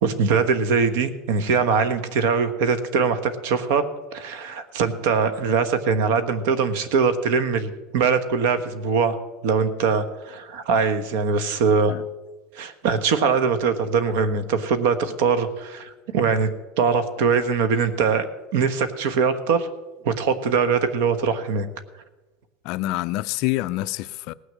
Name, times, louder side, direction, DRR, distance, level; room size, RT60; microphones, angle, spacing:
voice 1, 0.0-3.8 4.1-9.2 9.4-11.9 12.5-16.5 16.8-18.2 18.5-19.7 20.0-21.7, right 5 dB, 70° right, 1.2 m, -22 dB
voice 2, 22.6-24.3, left 17 dB, 50° left, 0.4 m, -26 dB
18.0 x 6.4 x 7.5 m
cardioid pair, 165°, 0 cm